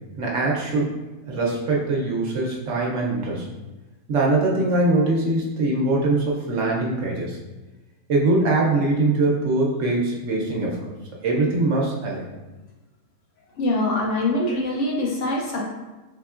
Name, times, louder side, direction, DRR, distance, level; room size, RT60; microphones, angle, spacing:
voice 1, 0.2-0.9 1.3-3.5 4.1-7.4 8.1-10.8 11.2-12.2, right 2 dB, 65° right, -3 dB, 0.9 m, -22 dB
voice 2, 13.6-15.7, left 1 dB, 65° left, -2 dB, 0.8 m, -24 dB
3.7 x 3.3 x 2.4 m, 1.1 s
omnidirectional pair, 1.5 m